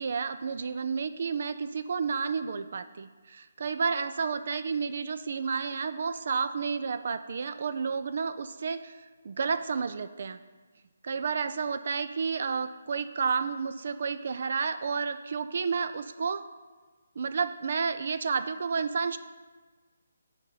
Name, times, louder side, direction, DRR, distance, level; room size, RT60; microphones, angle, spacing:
voice 1, 0.0-10.4 11.0-16.4 17.2-19.2, right 5 dB, 50° right, 12 dB, 0.4 m, -31 dB
9.0 x 5.0 x 5.5 m, 1.4 s
figure-of-eight pair, 145°, 0 cm